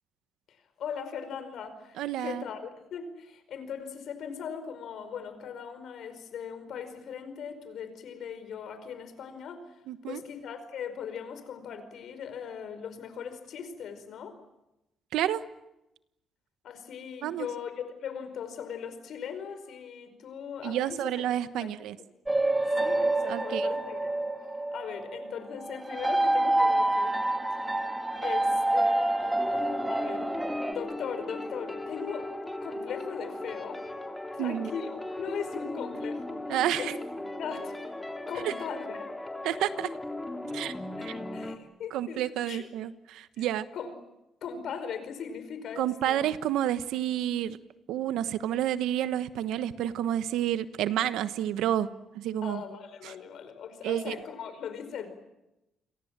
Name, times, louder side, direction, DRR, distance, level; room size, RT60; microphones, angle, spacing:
voice 1, 0.8-2.6 2.9-9.6 10.1-14.4 16.6-21.2 21.6-21.7 22.8-24.0 24.7-27.2 28.2-30.3 30.7-32.3 32.6-33.9 34.3-36.4 36.8-36.9 37.3-37.7 38.3-39.1 41.0-42.6 43.4-43.5 43.7-43.9 44.4-46.2 52.4-55.1, left 7 dB, 70° left, 10 dB, 4.9 m, -39 dB
voice 2, 2.0-2.4 9.9-10.2 15.1-15.4 17.2-17.5 20.6-22.0 23.3-23.7 34.4-34.7 36.5-37.0 38.4-38.5 39.4-39.9 40.5-40.7 41.0-41.1 41.9-43.6 45.8-47.6 47.9-51.9 52.1-52.6 53.0-53.1 53.8-54.1, right 11 dB, 90° right, 12 dB, 1.2 m, -29 dB
sound 1, 22.3-30.7, right 1 dB, 10° right, 2.1 m, -27 dB
sound 2, 29.4-41.6, left 2 dB, 10° left, 3.6 m, -37 dB
29.5 x 23.5 x 7.5 m, 0.93 s
cardioid pair, 90°, 0 cm